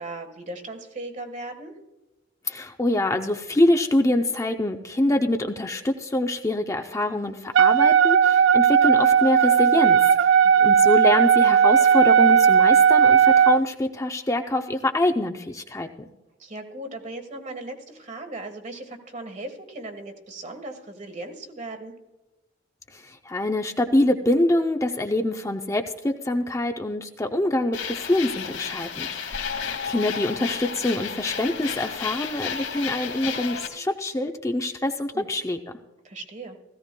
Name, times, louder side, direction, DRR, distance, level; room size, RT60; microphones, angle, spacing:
voice 1, 0.0-1.8 10.4-10.5 16.4-21.9 35.1-35.3 36.0-36.6, right 2 dB, 40° right, 6 dB, 1.4 m, -37 dB
voice 2, 2.5-16.1 22.9-29.6 29.8-35.6, left 1 dB, 15° left, 4 dB, 0.5 m, -25 dB
Wind instrument woodwind instrument, 7.5-13.6, right 8 dB, 75° right, 0.3 m, -16 dB
sound 1, 27.7-33.7, left 7 dB, 75° left, 1.6 m, -32 dB
17.0 x 15.0 x 2.2 m, 1.0 s
head